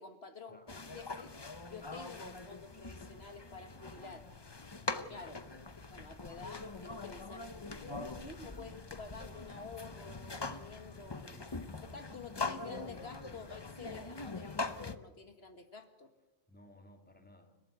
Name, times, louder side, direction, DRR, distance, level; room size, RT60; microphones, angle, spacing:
voice 1, 0.0-1.3 1.7-4.3 4.9-5.4 5.9-11.2 11.9-16.1, left 4 dB, 70° left, 2.0 m, -50 dB
sound 1, 0.7-15.0, left 3 dB, 25° left, 0.9 m, -43 dB
voice 2, 5.1-5.4 10.4-11.8 12.6-13.2 16.5-17.6, left 1 dB, 10° left, 2.4 m, -59 dB
29.5 x 13.0 x 8.3 m
omnidirectional pair, 1.1 m